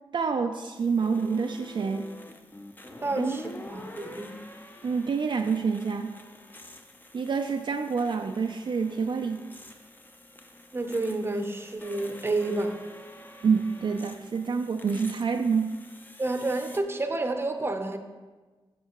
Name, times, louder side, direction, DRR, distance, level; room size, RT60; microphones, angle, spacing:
voice 1, 0.1-2.1 3.2-3.4 4.8-6.1 7.1-9.4 13.4-15.7, right 5 dB, 55° right, 4 dB, 0.4 m, -27 dB
sound 1, 0.8-16.8, left 1 dB, 20° left, 0.6 m, -47 dB
voice 2, 3.0-4.4 10.7-12.8 16.2-18.0, right 2 dB, 25° right, 6 dB, 0.7 m, -29 dB
13.0 x 5.5 x 3.0 m, 1.3 s
wide cardioid pair, 95°, 9 cm